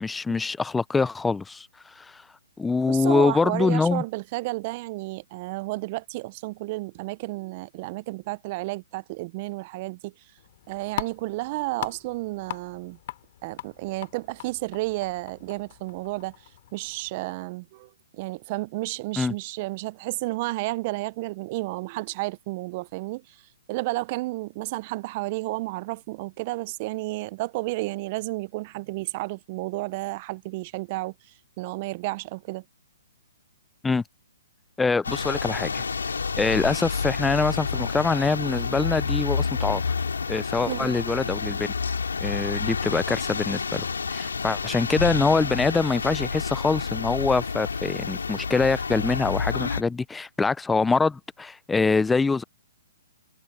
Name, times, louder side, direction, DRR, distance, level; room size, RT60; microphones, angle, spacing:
voice 1, 0.0-1.7 2.0-2.2 2.6-4.0 19.2-19.3 33.8-34.0 34.8-35.8 36.4-39.8 40.3-41.7 42.2-52.4, left 4 dB, 10° left, 0.5 m, -24 dB
voice 2, 2.9-10.1 10.7-13.0 13.4-16.3 16.7-23.2 23.7-31.1 31.6-32.6 40.6-40.9, right 22 dB, 40° right, 0.5 m, -32 dB
sound 1, 10.4-17.1, left 14 dB, 50° left, 2.8 m, -40 dB
sound 2, 35.0-49.8, left 5 dB, 80° left, 2.7 m, -29 dB
hypercardioid pair, 130°, 0 cm